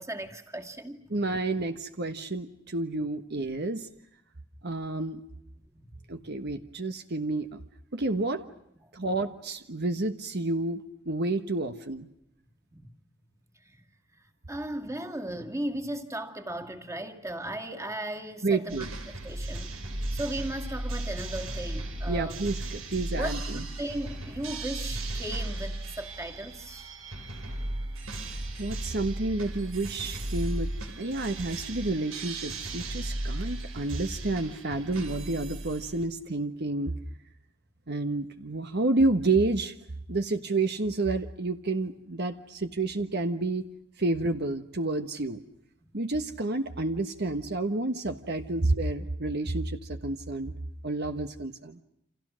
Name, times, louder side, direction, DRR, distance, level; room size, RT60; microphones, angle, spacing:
voice 1, 0.0-1.0 5.7-6.0 12.7-12.9 13.7-13.8 14.5-19.7 20.1-22.4 23.1-26.9, right 1 dB, 15° right, 2.3 m, -36 dB
voice 2, 1.1-3.9 4.6-5.2 6.1-7.6 7.9-8.4 8.9-12.1 18.4-18.9 22.1-23.6 28.6-30.7 31.0-36.9 37.9-39.7 40.1-43.6 44.0-45.4 45.9-50.5 50.8-51.8, right 2 dB, 55° right, 1.3 m, -30 dB
sound 1, 18.7-36.0, right 1 dB, 90° right, 5.1 m, -36 dB
29.5 x 28.0 x 6.4 m
head